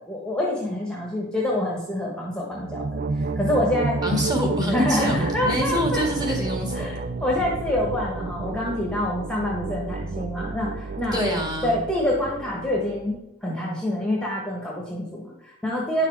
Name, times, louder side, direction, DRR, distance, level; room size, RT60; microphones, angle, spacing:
voice 1, 0.1-2.9 3.4-4.0 4.7-6.1 6.8-11.2 11.6-16.1, left 1 dB, 5° left, -3 dB, 1.3 m, -26 dB
sound 1, 2.5-13.2, right 3 dB, 40° right, 0.4 m, -30 dB
voice 2, 4.0-6.9 11.1-11.8, equal, 20° right, 1 dB, 1.8 m, -26 dB
9.6 x 5.9 x 4.7 m, 0.87 s
head